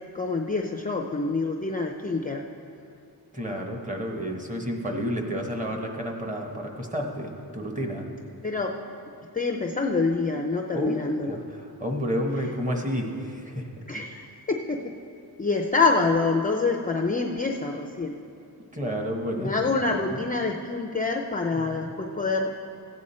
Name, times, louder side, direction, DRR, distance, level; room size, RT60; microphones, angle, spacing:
voice 1, 0.1-2.5 8.4-8.8 9.3-11.4 13.9-14.9 15.4-18.2 19.4-22.5, left 3 dB, 20° left, 2 dB, 0.5 m, -26 dB
voice 2, 3.3-8.1 10.7-13.7 18.7-20.2 21.5-21.9, equal, 20° right, 2 dB, 1.1 m, -31 dB
14.5 x 8.7 x 4.3 m, 2.6 s
wide cardioid pair, 120°, 41 cm